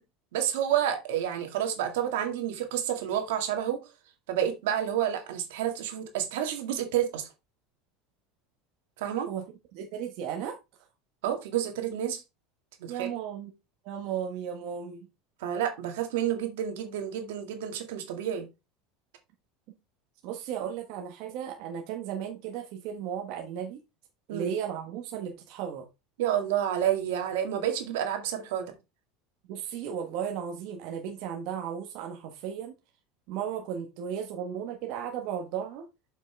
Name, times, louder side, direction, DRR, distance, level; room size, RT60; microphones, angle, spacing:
voice 1, 0.3-3.8 4.3-7.3 9.0-9.3 11.2-12.2 12.8-13.1 15.4-18.5 24.3-24.5 26.2-28.7, right 10 dB, 80° right, 2.0 m, -29 dB
voice 2, 9.7-10.6 12.9-13.5 13.8-15.1 20.2-23.8 24.3-25.9 29.5-32.7 33.3-35.8, right 8 dB, 60° right, 1.3 m, -35 dB
7.2 x 5.9 x 3.4 m
supercardioid pair, 130°, 0 cm